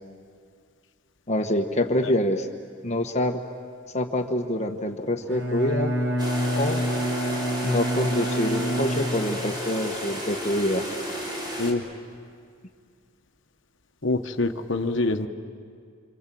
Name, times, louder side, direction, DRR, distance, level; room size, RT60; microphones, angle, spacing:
voice 1, 1.3-2.5 2.8-3.4 3.9-5.9 6.5-6.8 7.6-10.9, left 1 dB, 35° left, 5 dB, 1.2 m, -26 dB
Bowed string instrument, 5.2-9.5, equal, 65° right, 4.1 m, -27 dB
sound 1, 6.2-11.7, equal, 20° right, 3.5 m, -33 dB
voice 2, 14.0-15.3, left 2 dB, 65° left, 7 dB, 1.2 m, -25 dB
27.0 x 26.5 x 7.7 m, 2.2 s
head